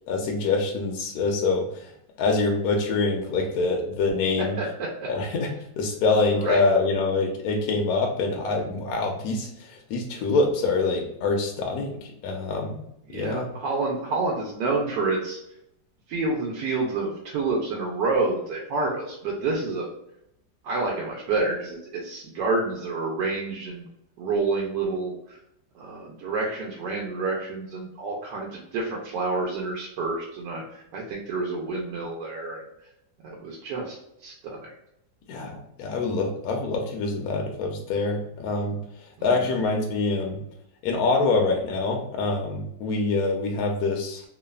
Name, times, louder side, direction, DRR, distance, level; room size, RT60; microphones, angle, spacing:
voice 1, 0.1-1.9 2.2-4.5 5.1-12.8 13.1-13.5 35.3-38.8 39.2-40.4 40.8-44.2, left 3 dB, 70° left, 1 dB, 0.9 m, -25 dB
voice 2, 4.6-5.1 6.3-6.6 13.1-15.4 16.1-19.9 20.6-23.9 24.2-25.4 25.7-32.9 33.2-34.7 39.2-39.5, right 3 dB, 80° right, -2 dB, 1.2 m, -28 dB
3.2 x 2.0 x 2.2 m, 0.78 s
omnidirectional pair, 1.8 m